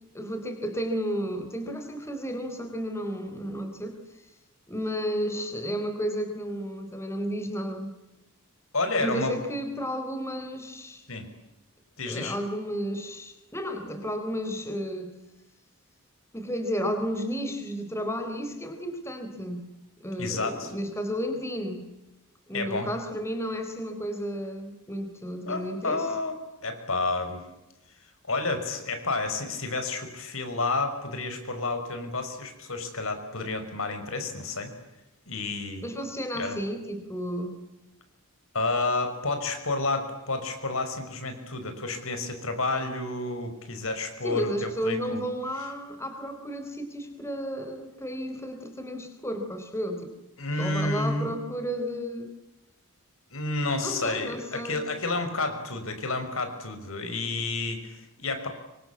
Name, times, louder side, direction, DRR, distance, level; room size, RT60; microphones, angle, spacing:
voice 1, 0.1-3.9 4.7-7.9 9.0-11.1 12.1-15.2 16.3-19.7 20.0-21.9 22.5-26.1 35.8-37.6 44.2-50.1 50.6-52.3 53.8-54.9, equal, 10° left, 6 dB, 4.0 m, -32 dB
voice 2, 8.7-9.4 11.1-11.3 12.0-12.4 20.2-20.7 22.5-22.9 25.5-26.4 26.6-27.4 28.3-34.7 35.3-35.9 36.3-36.6 38.5-45.2 45.6-45.7 50.4-51.4 53.3-58.5, left 3 dB, 65° left, 7 dB, 5.9 m, -30 dB
27.0 x 25.0 x 8.6 m, 0.94 s
head